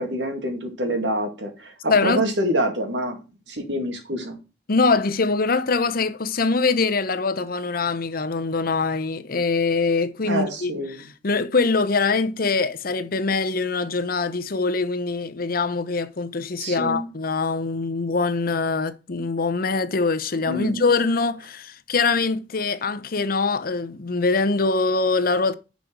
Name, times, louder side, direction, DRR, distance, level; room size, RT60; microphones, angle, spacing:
voice 1, 0.0-3.2 3.5-4.4 10.2-11.1 16.6-17.1 20.4-21.0, right 1 dB, 85° right, 2.4 m, -26 dB
voice 2, 1.9-2.2 4.7-10.7 11.0-25.6, left 4 dB, 55° left, 0.8 m, -23 dB
10.5 x 5.2 x 4.6 m
head